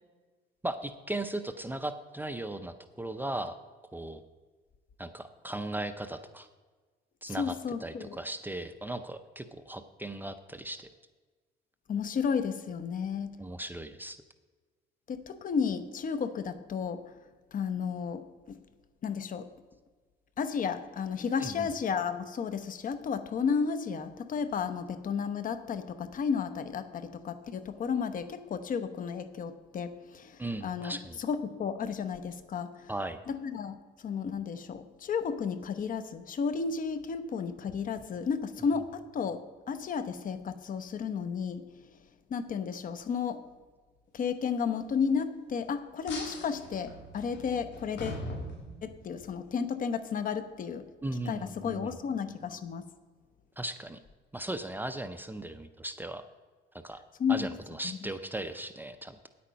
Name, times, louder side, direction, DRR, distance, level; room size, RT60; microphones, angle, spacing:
voice 1, 0.6-3.5 3.9-4.2 5.0-6.5 7.2-7.5 7.8-10.9 13.4-14.2 21.4-21.7 30.4-31.2 32.9-33.2 51.0-51.9 53.6-54.0 54.3-56.2 56.8-57.0 57.3-59.3, right 1 dB, 10° right, 10 dB, 0.5 m, -37 dB
voice 2, 7.3-8.2 11.9-13.3 15.1-17.0 17.5-18.6 19.0-19.5 20.4-32.9 33.3-33.8 34.0-39.4 39.7-41.6 42.3-43.4 44.1-48.3 48.8-50.8 51.2-52.8 57.2-57.5 57.8-58.0, left 6 dB, 50° left, 11 dB, 0.8 m, -33 dB
sound 1, 46.1-49.3, left 1 dB, 85° left, 2.6 m, -41 dB
9.8 x 8.5 x 5.2 m, 1.4 s
cardioid pair, 120°, 18 cm